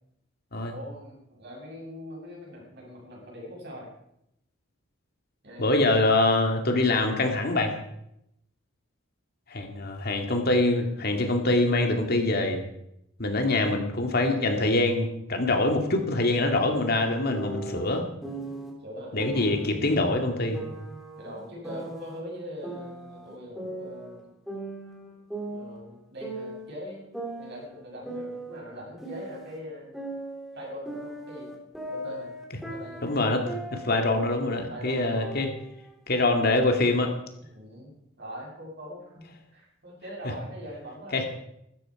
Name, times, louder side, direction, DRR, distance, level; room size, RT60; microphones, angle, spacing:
voice 1, 0.7-3.9 5.4-5.8 13.4-13.8 18.8-19.6 21.2-24.3 25.5-27.0 27.4-29.9 30.5-31.5 31.9-32.3 32.7-33.0 34.7-35.3 37.5-37.9 38.2-39.2 39.5-41.3, equal, 55° right, -2 dB, 7.4 m, -42 dB
voice 2, 5.6-7.8 9.5-12.6 13.2-18.0 19.1-20.6 33.0-35.5 36.1-37.1 41.1-41.3, left 2 dB, 50° left, 3 dB, 2.4 m, -24 dB
sound 1, 17.3-18.7 19.2-19.7 20.5-22.2 22.6-24.2 24.5-26.7 27.1-29.6 29.9-34.1 34.3-34.7 35.2-36.2, right 2 dB, ahead, 3.8 m, -38 dB
16.5 x 13.0 x 5.0 m, 0.78 s
head